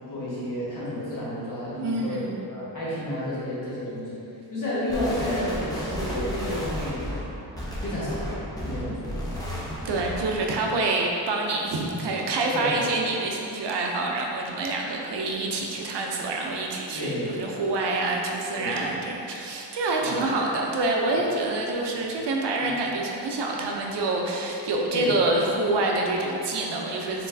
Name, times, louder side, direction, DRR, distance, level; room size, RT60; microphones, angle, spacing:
voice 1, 0.1-2.2 2.5-7.0 7.8-8.3 8.6-9.2 12.5-12.8 16.9-17.4 18.5-18.8 20.0-20.2 24.9-25.1, left 1 dB, 45° left, -9 dB, 1.5 m, -31 dB
voice 2, 1.8-2.4 9.8-27.3, right 2 dB, 70° right, 0 dB, 0.6 m, -27 dB
sound 1, 4.9-10.4, equal, 10° left, 0.7 m, -32 dB
4.5 x 3.9 x 2.6 m, 2.8 s
wide cardioid pair, 140°, 43 cm